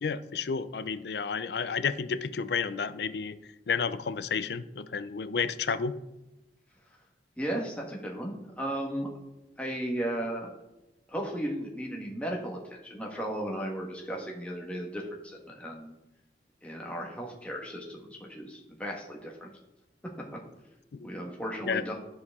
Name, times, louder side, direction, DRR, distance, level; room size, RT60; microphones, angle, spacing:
voice 1, 0.0-3.4 3.7-5.9 20.9-21.1 21.7-21.8, left 5 dB, 65° left, 13 dB, 0.4 m, -31 dB
voice 2, 7.4-9.1 9.6-10.5 11.1-15.9 16.6-19.5 21.0-21.9, right 1 dB, 5° left, -1 dB, 1.2 m, -35 dB
12.5 x 4.8 x 3.6 m, 0.98 s
head